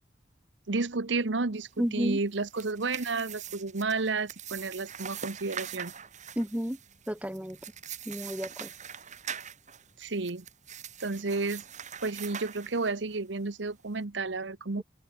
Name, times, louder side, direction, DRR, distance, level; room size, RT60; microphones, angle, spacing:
voice 1, 0.7-5.9 10.0-10.4 11.0-11.6 12.0-14.8, right 3 dB, 70° right, 1.1 m, -31 dB
voice 2, 1.8-2.2 6.4-6.8 7.1-7.6 8.1-8.7 14.8-14.9, equal, 10° right, 1.4 m, -31 dB
sound 1, 2.3-13.2, right 8 dB, 40° right, 2.8 m, -43 dB
open air
head